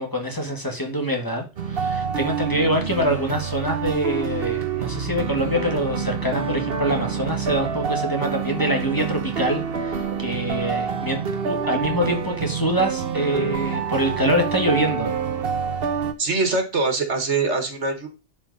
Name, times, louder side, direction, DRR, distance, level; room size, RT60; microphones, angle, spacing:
voice 1, 0.0-11.2 11.4-15.1, equal, 20° left, 2 dB, 1.7 m, -25 dB
sound 1, 1.6-16.1, right 6 dB, 60° right, 1.1 m, -27 dB
voice 2, 16.2-18.1, right 3 dB, 85° right, 5 dB, 2.1 m, -23 dB
10.5 x 5.1 x 4.0 m, 0.30 s
omnidirectional pair, 1.2 m